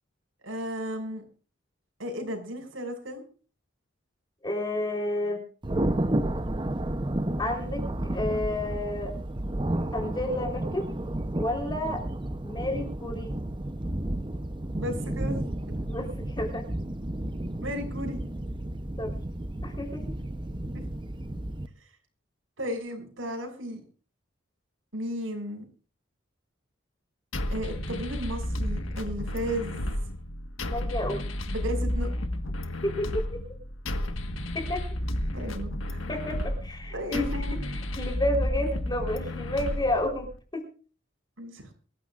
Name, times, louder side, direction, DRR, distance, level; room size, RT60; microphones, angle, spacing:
voice 1, 0.4-1.2 2.0-3.2 14.7-15.4 17.6-18.2 20.7-20.8 22.6-23.8 24.9-25.6 27.5-29.9 31.5-32.1 35.3-36.0 36.9-37.6 41.4-41.7, equal, 80° right, 2 dB, 6.5 m, -34 dB
voice 2, 4.4-5.4 7.4-9.1 9.9-10.9 11.4-12.0 12.4-13.3 15.9-16.7 19.0-19.1 19.6-20.1 30.7-31.2 32.8-33.4 34.5-34.8 36.1-37.3 37.7-40.3 40.5-40.6, left 1 dB, 20° left, 2 dB, 3.8 m, -31 dB
Thunder, 5.6-21.7, right 1 dB, 25° right, 0.8 m, -32 dB
sound 1, 27.3-40.4, left 1 dB, 80° left, 1.6 m, -32 dB
24.0 x 15.0 x 2.5 m, 0.40 s
head